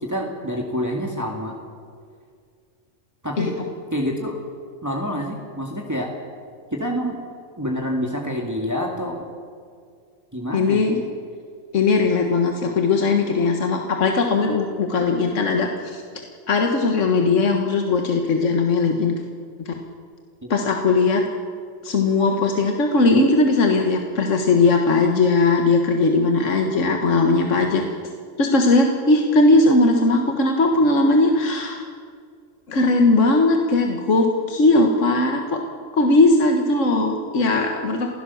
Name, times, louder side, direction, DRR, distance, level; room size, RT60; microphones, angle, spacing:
voice 1, 0.0-1.5 3.2-3.6 3.9-4.4 4.8-6.1 6.7-7.2 7.6-9.3 10.3-10.8 20.4-20.5, equal, 15° right, 0 dB, 2.1 m, -27 dB
voice 2, 10.5-11.0 11.7-16.0 16.5-19.2 19.7-19.8 20.5-21.3 21.8-27.8 28.4-31.8 32.7-35.6 35.9-38.1, left 3 dB, 70° left, 3 dB, 1.8 m, -19 dB
28.0 x 16.0 x 7.1 m, 2.1 s
omnidirectional pair, 1.3 m